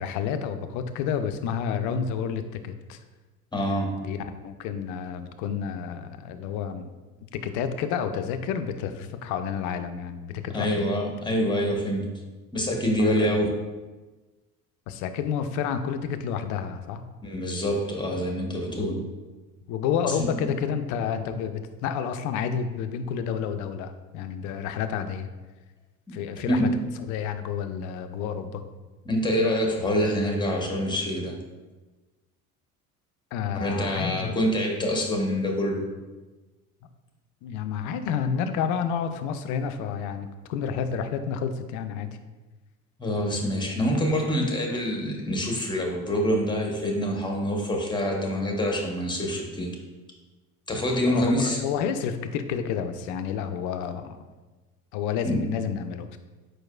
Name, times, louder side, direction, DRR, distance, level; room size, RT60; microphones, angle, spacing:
voice 1, 0.0-3.0 4.0-6.9 7.3-10.9 13.0-13.4 14.9-17.0 19.7-25.3 26.1-26.7 27.1-28.6 33.3-34.3 37.4-42.1 51.1-54.2 54.9-56.2, left 7 dB, 45° left, 9 dB, 0.4 m, -30 dB
voice 2, 3.5-3.9 10.5-12.0 12.5-13.5 17.2-19.0 20.4-20.5 26.1-26.2 26.4-26.7 29.1-31.4 33.5-35.8 43.0-49.7 50.7-51.6 55.2-55.4, equal, 10° left, 1 dB, 0.8 m, -26 dB
4.6 x 4.6 x 2.2 m, 1.2 s
figure-of-eight pair, 60°, 45 cm